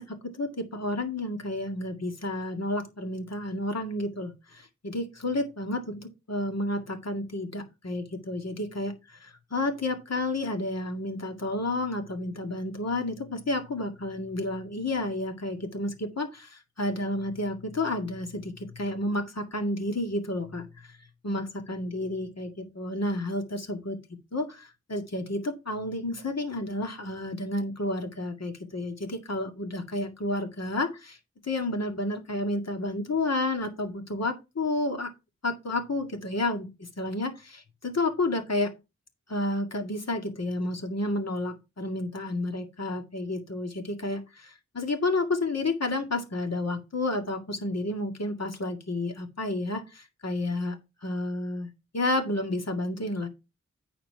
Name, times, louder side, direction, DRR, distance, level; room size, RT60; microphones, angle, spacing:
voice 1, 0.0-20.9 21.2-24.0 24.3-31.2 31.4-35.1 35.4-36.7 37.0-38.7 39.3-50.8 51.0-51.7 51.9-53.3, left 2 dB, 60° left, 4 dB, 2.1 m, -31 dB
9.2 x 4.3 x 5.6 m, 0.26 s
cardioid pair, 45°, 29 cm